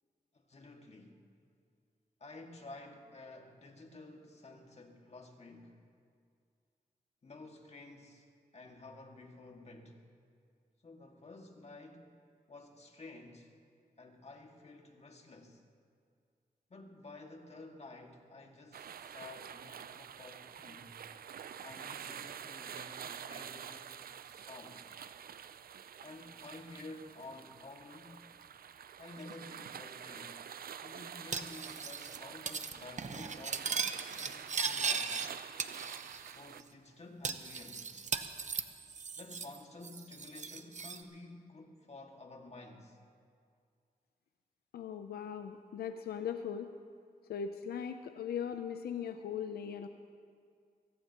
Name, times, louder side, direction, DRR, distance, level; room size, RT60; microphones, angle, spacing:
voice 1, 0.3-1.2 2.2-5.8 7.2-8.3 8.5-10.0 10.8-12.2 12.5-13.5 14.0-15.6 16.7-21.0 21.6-24.0 24.2-24.9 26.0-28.3 29.0-30.4 30.8-33.8 34.3-35.2 36.3-37.9 39.2-43.0, left 2 dB, 45° left, 2 dB, 2.1 m, -52 dB
sound 1, 18.7-36.6, right 8 dB, 70° right, 0.5 m, -48 dB
Cutlery silverware, 31.3-32.2 32.5-32.7 33.0-35.3 35.6-36.3 36.6-36.7 37.2-39.6 39.8-41.0, right 5 dB, 50° right, 0.9 m, -37 dB
voice 2, 44.7-46.7 47.3-49.9, left 8 dB, 90° left, 8 dB, 0.6 m, -39 dB
22.5 x 16.0 x 3.0 m, 2.2 s
cardioid pair, 55°, 16 cm